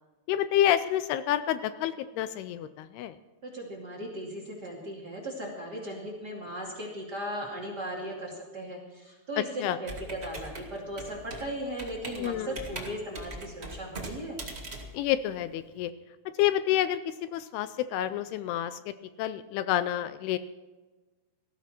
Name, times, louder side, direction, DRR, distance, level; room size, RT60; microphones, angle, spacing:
voice 1, 0.3-3.2 9.4-9.8 12.2-12.6 14.9-15.9 16.4-18.9 19.2-20.4, left 12 dB, 80° left, 13 dB, 2.5 m, -28 dB
voice 2, 3.4-14.4, right 1 dB, 30° right, -1 dB, 2.2 m, -37 dB
Computer keyboard, 9.8-15.8, right 2 dB, 50° right, 0.7 m, -41 dB
18.5 x 14.0 x 4.4 m, 1.2 s
omnidirectional pair, 4.7 m